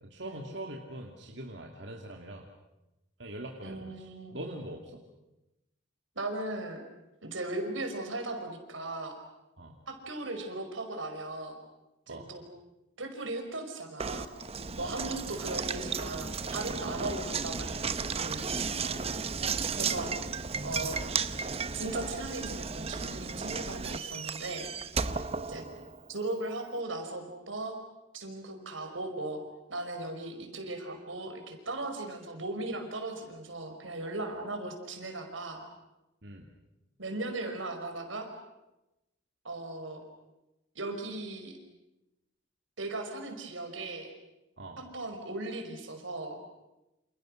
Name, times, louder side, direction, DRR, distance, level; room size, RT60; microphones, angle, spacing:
voice 1, 0.0-2.4 3.2-5.0 9.6-9.8 12.1-12.3 14.8-15.0 16.9-17.0 18.8-19.1 25.1-25.3 36.2-36.5 44.6-44.8, right 1 dB, 60° right, 1 dB, 2.5 m, -43 dB
voice 2, 3.6-4.4 6.2-6.8 7.2-9.2 9.9-11.6 12.1-12.4 13.0-14.3 14.8-18.5 19.8-20.1 20.6-21.0 21.7-24.7 25.5-25.6 26.1-27.8 28.1-29.4 29.7-35.6 37.0-38.3 39.4-40.0 40.8-41.6 42.8-44.1 44.8-46.4, right 2 dB, 85° right, 5 dB, 5.2 m, -37 dB
Knock, 14.0-26.1, right 5 dB, 30° right, 0.9 m, -34 dB
29.0 x 28.5 x 6.5 m, 0.96 s
head